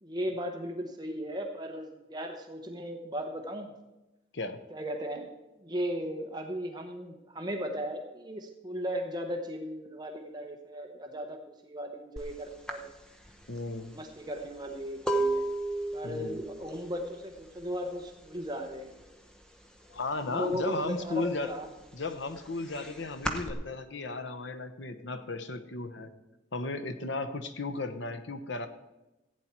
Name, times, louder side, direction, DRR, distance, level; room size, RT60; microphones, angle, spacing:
voice 1, 0.0-3.7 4.7-5.3 5.6-11.4 11.6-12.9 13.8-15.4 15.9-18.9 20.3-21.7, equal, 20° right, 3 dB, 1.0 m, -36 dB
sound 1, 12.2-12.3 12.7-18.4 18.6-19.1 19.4-20.6 20.9-23.5, right 2 dB, 5° left, 0.9 m, -34 dB
voice 2, 13.5-13.9 16.0-16.4 19.9-21.5 21.9-26.1 26.5-28.7, left 3 dB, 70° left, 10 dB, 1.0 m, -35 dB
15.0 x 8.7 x 4.5 m, 1.0 s
head